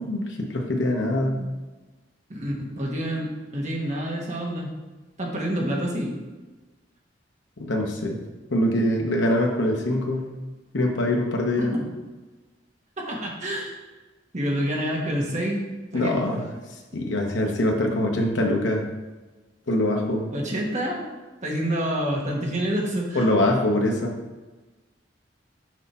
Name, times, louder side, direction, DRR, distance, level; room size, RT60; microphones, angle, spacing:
voice 1, 0.0-1.5 7.6-8.2 8.5-10.3 10.7-11.7 15.9-16.5 16.9-18.9 19.7-20.3 23.1-24.1, left 1 dB, 80° left, 0 dB, 1.0 m, -23 dB
voice 2, 2.3-4.7 5.2-6.2 11.6-11.8 13.0-13.8 14.3-15.6 15.9-16.4 20.3-21.1 21.4-23.3, equal, 40° right, -2 dB, 1.4 m, -27 dB
6.3 x 5.3 x 4.3 m, 1.2 s
head